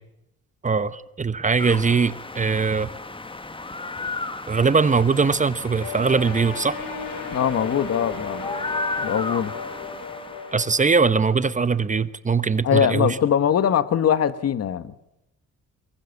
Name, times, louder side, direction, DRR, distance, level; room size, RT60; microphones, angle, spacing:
voice 1, 0.6-2.9 4.5-6.8 10.5-13.2, right 5 dB, 25° right, 15 dB, 1.0 m, -21 dB
sound 1, 1.6-10.7, left 2 dB, 15° left, 1.5 m, -34 dB
sound 2, 5.8-10.9, left 4 dB, 80° left, 6.3 m, -35 dB
voice 2, 7.3-8.5 9.0-9.5 12.6-14.9, left 9 dB, 55° left, 14 dB, 1.3 m, -22 dB
23.5 x 23.5 x 7.1 m, 0.88 s
cardioid pair, 90°, 30 cm